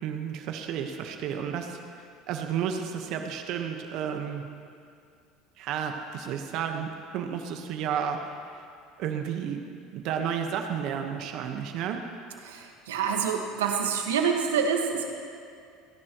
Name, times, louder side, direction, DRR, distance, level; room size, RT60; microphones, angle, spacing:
voice 1, 0.0-1.8 2.3-4.5 5.6-8.6 9.0-9.6 9.9-12.0, right 8 dB, 65° right, 4 dB, 1.3 m, -32 dB
voice 2, 12.4-15.1, right 6 dB, 90° right, 3 dB, 1.6 m, -27 dB
29.5 x 11.0 x 3.1 m, 2.3 s
hypercardioid pair, 85°, 0 cm